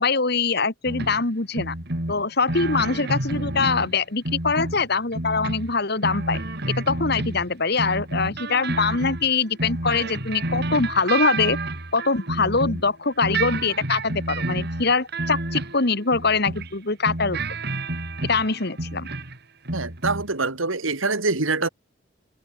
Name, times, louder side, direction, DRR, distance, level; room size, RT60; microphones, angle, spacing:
voice 1, 0.0-1.7 2.1-6.4 6.7-11.6 11.9-17.4 18.2-19.1, left 4 dB, 55° left, 2.0 m, -23 dB
sound 1, 0.9-1.2 1.5-4.0 4.3-7.5 7.8-12.9 13.2-16.7 17.1-19.4 19.7-20.3, right 2 dB, 55° right, 3.5 m, -29 dB
voice 2, 19.7-21.7, right 3 dB, 85° right, 3.1 m, -24 dB
head